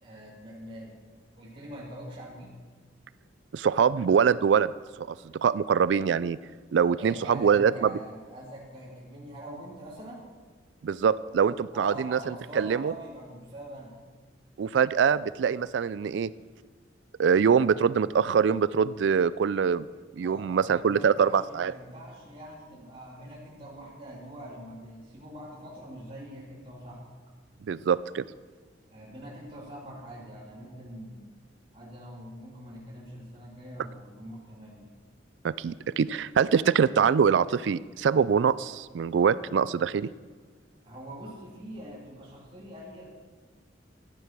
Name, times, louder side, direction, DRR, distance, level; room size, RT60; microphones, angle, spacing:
voice 1, 0.0-1.0 1.3-2.6 7.0-10.2 11.7-13.9 20.2-27.1 28.9-31.2 31.7-34.9 40.8-43.0, right 1 dB, 30° right, -6 dB, 3.0 m, -44 dB
voice 2, 3.5-4.7 5.0-6.4 6.7-7.9 10.8-12.9 14.6-16.3 17.2-19.9 20.1-21.7 27.7-28.2 35.4-40.1, right 7 dB, 75° right, 18 dB, 0.3 m, -24 dB
13.5 x 10.5 x 6.1 m, 1.4 s
head